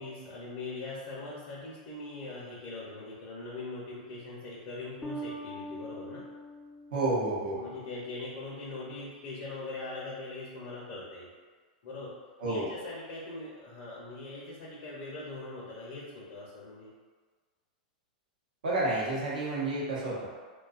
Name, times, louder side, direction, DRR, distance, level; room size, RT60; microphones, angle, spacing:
voice 1, 0.0-6.2 7.4-11.3 11.8-12.1 12.4-16.9, left 2 dB, 55° left, -5 dB, 0.6 m, -41 dB
Bass guitar, 5.0-8.0, right 1 dB, 10° left, 0.3 m, -43 dB
voice 2, 6.9-7.6 12.4-12.7 18.6-20.3, right 2 dB, 90° right, -6 dB, 0.7 m, -30 dB
2.6 x 2.2 x 2.4 m, 1.5 s
hypercardioid pair, 125°, 4 cm